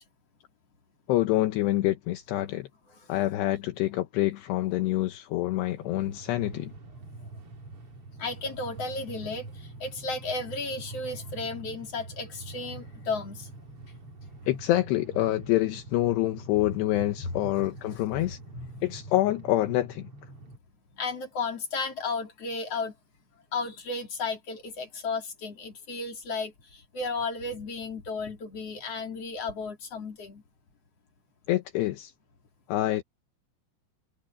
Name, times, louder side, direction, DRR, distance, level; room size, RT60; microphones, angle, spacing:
voice 1, 1.1-2.7 3.1-6.7 14.5-18.4 18.8-20.1 31.5-32.1 32.7-33.0, left 15 dB, 75° left, 2.7 m, -26 dB
Train, 5.4-20.6, right 2 dB, 35° right, 2.5 m, -45 dB
voice 2, 8.2-13.5 17.3-17.7 18.1-18.9 20.9-22.9 23.5-30.4, left 3 dB, 35° left, 3.1 m, -34 dB
omnidirectional pair, 5.9 m